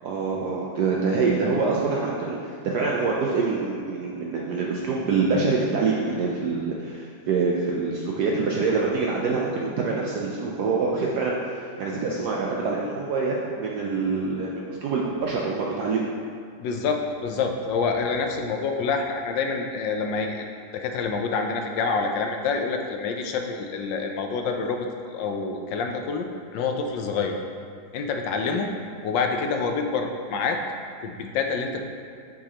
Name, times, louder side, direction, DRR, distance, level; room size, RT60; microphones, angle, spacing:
voice 1, 0.0-16.1 28.4-28.5, right 4 dB, 70° right, -3 dB, 1.1 m, -25 dB
voice 2, 16.6-20.5 20.7-26.3 26.5-27.4 27.9-28.7 29.0-30.6 31.0-31.8, left 4 dB, 80° left, 3 dB, 1.3 m, -27 dB
8.0 x 5.1 x 2.9 m, 2.3 s
omnidirectional pair, 2.0 m